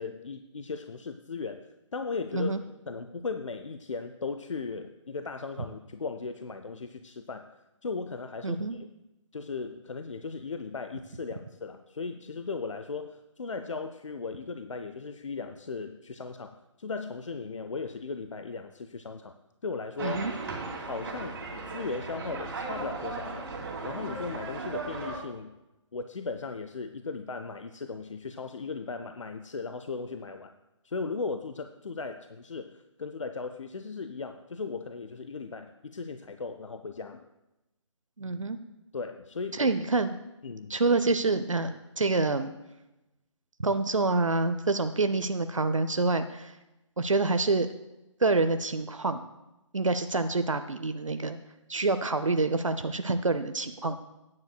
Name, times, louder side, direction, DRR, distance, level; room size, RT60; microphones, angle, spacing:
voice 1, 0.0-1.7 1.9-2.6 2.9-7.5 7.8-8.9 9.3-19.3 19.6-20.2 20.8-23.4 23.8-25.5 25.9-30.5 30.8-37.2 38.9-39.7 40.4-40.8, left 4 dB, 75° left, 8 dB, 0.6 m, -37 dB
voice 2, 8.4-8.7 20.0-20.3 38.2-38.6 39.5-40.2 40.7-42.5 43.6-46.6 47.0-47.7 48.2-49.2 49.7-51.4 51.7-54.0, right 3 dB, 85° right, 9 dB, 0.6 m, -27 dB
sound 1, 20.0-25.2, right 3 dB, 45° right, 2.7 m, -37 dB
16.0 x 9.6 x 2.3 m, 0.96 s
figure-of-eight pair, 140°, 16 cm